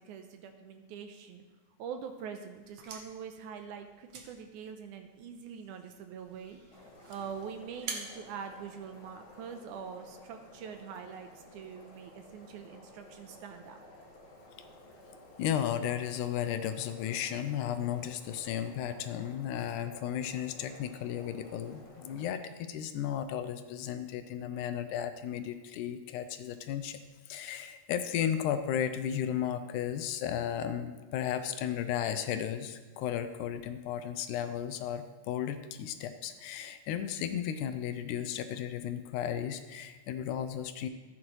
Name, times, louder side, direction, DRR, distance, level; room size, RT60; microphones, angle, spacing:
voice 1, 0.0-1.4 1.8-13.8, right 7 dB, 80° right, 6 dB, 2.0 m, -44 dB
sound 1, 2.5-9.4, right 5 dB, 60° right, 1.5 m, -48 dB
sound 2, 6.7-22.3, left 1 dB, 60° left, 3.1 m, -54 dB
voice 2, 15.4-27.0 27.3-40.9, left 9 dB, 80° left, 10 dB, 2.0 m, -34 dB
14.5 x 8.8 x 3.1 m, 1.3 s
omnidirectional pair, 3.7 m